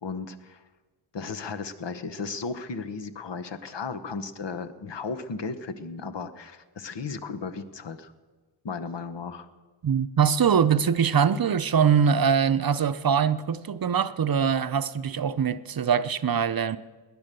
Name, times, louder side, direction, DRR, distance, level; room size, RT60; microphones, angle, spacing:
voice 1, 0.0-0.6 1.1-8.1 8.6-9.5, left 4 dB, 70° left, 1.1 m, -35 dB
voice 2, 9.8-16.8, right 7 dB, 50° right, 0.6 m, -23 dB
19.5 x 10.5 x 6.8 m
wide cardioid pair, 90°, 44 cm